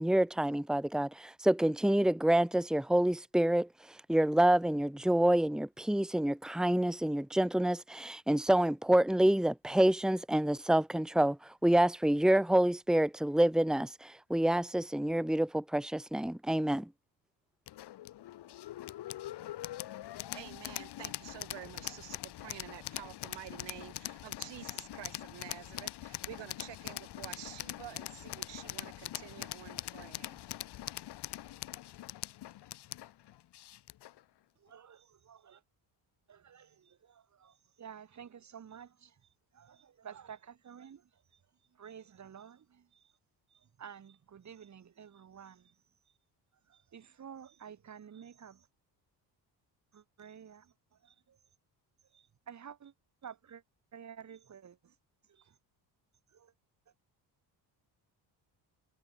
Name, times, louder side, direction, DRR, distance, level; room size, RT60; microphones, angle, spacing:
voice 1, 0.0-3.7 4.1-16.9, right 1 dB, ahead, 1.9 m, -27 dB
sound 1, 17.7-34.2, left 14 dB, 70° left, 1.7 m, -43 dB
voice 2, 20.1-30.4, right 15 dB, 90° right, 5.5 m, -49 dB
voice 3, 34.6-35.6 36.3-39.1 39.5-41.0 41.8-42.8 43.8-45.7 46.7-48.6 49.9-50.7 51.0-51.1 52.1-52.9 53.2-53.6 53.9-54.9 55.3-55.4 56.3-56.5, right 8 dB, 45° right, 3.4 m, -51 dB
cardioid pair, 130°, 41 cm